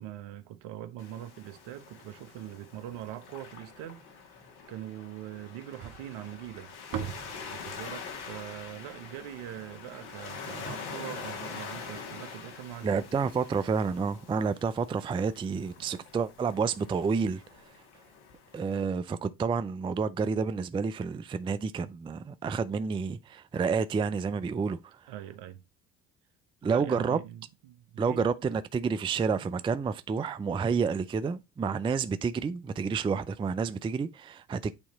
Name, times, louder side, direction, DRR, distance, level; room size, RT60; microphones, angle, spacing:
voice 1, 0.0-6.7 7.5-13.0 15.5-16.0 25.1-25.6 26.6-28.3, right 12 dB, 70° right, 1.0 m, -42 dB
Waves surf, 1.0-18.8, left 5 dB, 60° left, 1.8 m, -45 dB
sound 1, 5.8-10.1, right 8 dB, 50° right, 1.3 m, -42 dB
voice 2, 12.8-17.4 18.5-24.8 26.6-27.2 28.0-34.7, right 5 dB, 15° right, 0.4 m, -29 dB
8.7 x 2.9 x 4.0 m
hypercardioid pair, 65°, 44 cm